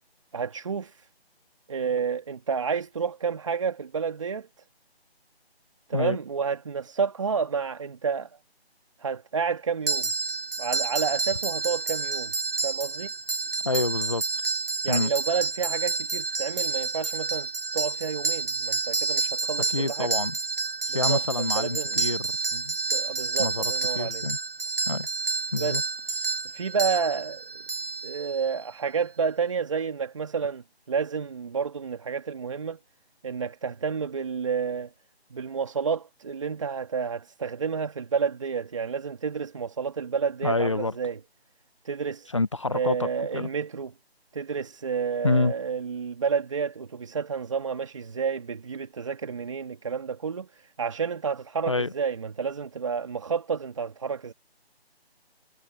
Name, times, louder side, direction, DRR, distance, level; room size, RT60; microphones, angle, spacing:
voice 1, 0.3-1.1 1.7-4.5 5.9-8.3 9.0-10.1 10.6-12.3 12.6-13.1 14.8-20.1 20.9-22.1 22.9-24.3 25.6-25.9 26.5-27.6 28.0-32.8 33.2-34.9 35.3-41.2 41.8-42.3 42.7-43.9 44.3-54.3, right 6 dB, 30° right, 2.0 m, -30 dB
sound 1, 9.9-28.6, right 4 dB, 60° right, 6.6 m, -29 dB
voice 2, 13.6-14.2 14.9-15.1 19.7-20.4 20.9-22.7 23.4-24.4 24.9-25.1 25.5-25.8 40.4-40.9 42.3-43.1 43.3-43.5 45.2-45.5 51.7-51.9, left 3 dB, 30° left, 0.8 m, -27 dB
figure-of-eight pair, 170°, 32 cm